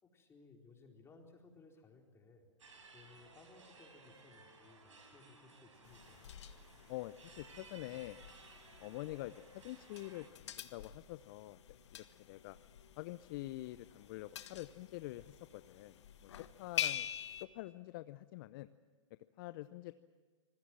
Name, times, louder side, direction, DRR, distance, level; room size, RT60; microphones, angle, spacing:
voice 1, 0.0-2.4 2.9-6.3, left 3 dB, 15° left, 2 dB, 4.2 m, -61 dB
sound 1, 2.6-10.3, right 3 dB, 75° right, 5.9 m, -59 dB
sound 2, 5.8-17.5, left 10 dB, 65° left, 1.5 m, -46 dB
voice 2, 6.9-8.2 8.8-11.6 11.9-12.6 13.0-17.1 17.4-18.7 19.4-19.9, left 17 dB, 45° left, 14 dB, 0.7 m, -46 dB
26.5 x 20.5 x 7.5 m, 1.5 s
hypercardioid pair, 115°, 16 cm